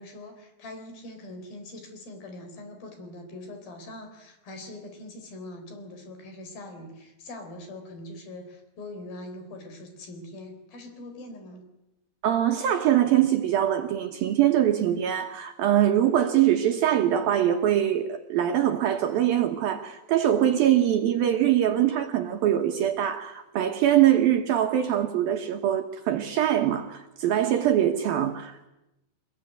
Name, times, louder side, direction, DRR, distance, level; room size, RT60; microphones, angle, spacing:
voice 1, 0.0-11.7, left 1 dB, 55° left, 6 dB, 5.6 m, -42 dB
voice 2, 12.2-28.6, right 11 dB, 65° right, 5 dB, 2.6 m, -23 dB
25.0 x 21.0 x 9.4 m, 0.90 s
omnidirectional pair, 5.2 m